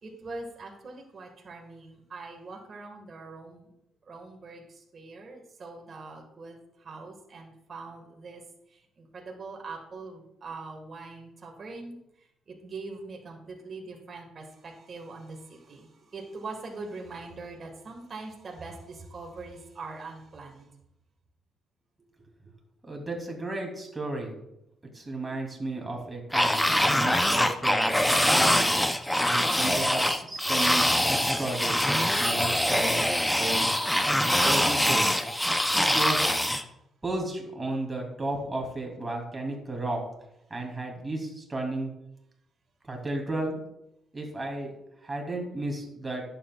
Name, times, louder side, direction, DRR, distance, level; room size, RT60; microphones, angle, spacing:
voice 1, 0.0-3.7 4.1-8.4 8.7-12.0 12.5-20.7, right 3 dB, 45° right, 1 dB, 1.6 m, -42 dB
voice 2, 22.8-24.3 24.9-28.7 29.2-33.0 33.4-33.7 34.4-35.1 35.7-36.3 37.0-40.0 40.5-41.9 42.9-43.6 44.1-44.7 45.0-46.2, right 2 dB, 20° right, 1 dB, 2.8 m, -33 dB
sound 1, 26.3-36.6, equal, 5° left, 0.6 m, -24 dB
11.0 x 7.8 x 2.4 m, 0.81 s
cardioid pair, 90°, 0 cm